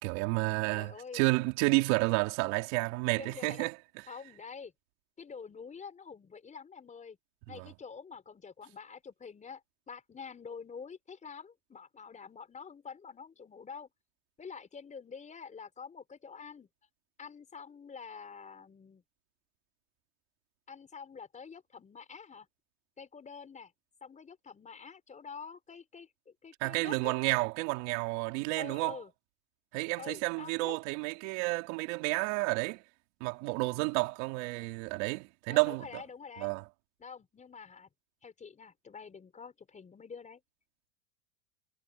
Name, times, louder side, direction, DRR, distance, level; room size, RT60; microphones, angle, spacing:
voice 1, 0.0-4.0 7.5-7.7 26.6-29.0 29.7-32.8 33.2-36.0 36.4-36.6, right 26 dB, 55° right, 3.5 m, -31 dB
voice 2, 0.7-1.5 3.2-3.7 4.1-4.7 5.2-7.2 7.5-9.6 9.9-13.9 14.4-16.7 17.2-19.0 20.7-22.5 23.0-23.7 24.0-27.1 28.6-29.1 30.0-30.8 35.5-36.5 37.0-37.9 38.2-40.4, left 5 dB, 15° left, 4.9 m, -47 dB
supercardioid pair, 140°, 43 cm